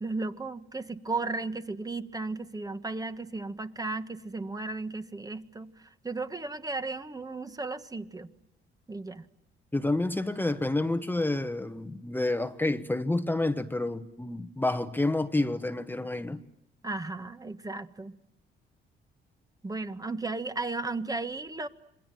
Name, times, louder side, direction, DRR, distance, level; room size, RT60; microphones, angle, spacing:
voice 1, 0.0-5.7 6.0-8.3 8.9-9.2 16.8-18.1 19.6-21.7, right 3 dB, 20° right, 1.4 m, -35 dB
voice 2, 9.7-16.4, left 2 dB, 10° left, 1.2 m, -29 dB
27.0 x 22.0 x 9.1 m
cardioid pair, 90°, 20 cm